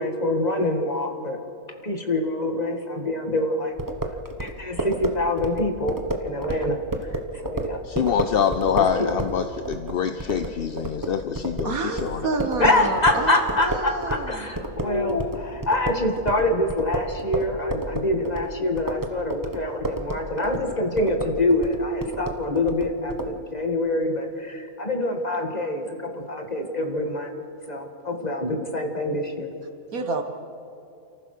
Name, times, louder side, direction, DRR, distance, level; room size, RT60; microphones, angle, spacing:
voice 1, 0.0-1.4 1.8-3.7 4.4-6.8 7.1-7.8 8.8-9.1 12.6-27.3 27.7-29.5, left 1 dB, 30° left, 4 dB, 1.9 m, -25 dB
sound 1, 3.8-14.3 14.6-23.3, right 1 dB, 15° right, 1.1 m, -31 dB
voice 2, 7.8-12.3, left 7 dB, 50° left, 8 dB, 0.7 m, -25 dB
voice 3, 11.6-14.5 29.9-30.2, right 3 dB, 70° right, 6 dB, 2.0 m, -29 dB
29.0 x 14.5 x 6.5 m, 2.7 s
omnidirectional pair, 1.5 m